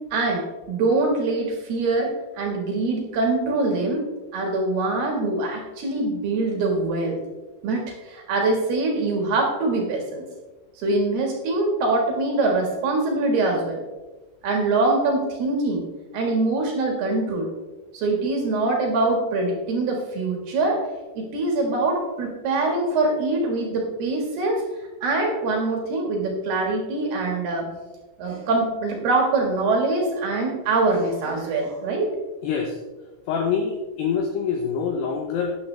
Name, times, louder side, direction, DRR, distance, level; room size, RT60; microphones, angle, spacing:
voice 1, 0.1-4.1 4.3-7.2 7.6-10.2 10.8-13.8 14.4-15.8 16.1-17.5 17.9-20.8 21.1-24.6 25.0-27.7 28.2-32.1, right 2 dB, 60° right, 1 dB, 3.2 m, -23 dB
voice 2, 32.4-32.8 33.3-35.6, left 6 dB, 85° left, 3 dB, 2.4 m, -25 dB
13.0 x 10.0 x 3.3 m, 1.2 s
omnidirectional pair, 6.0 m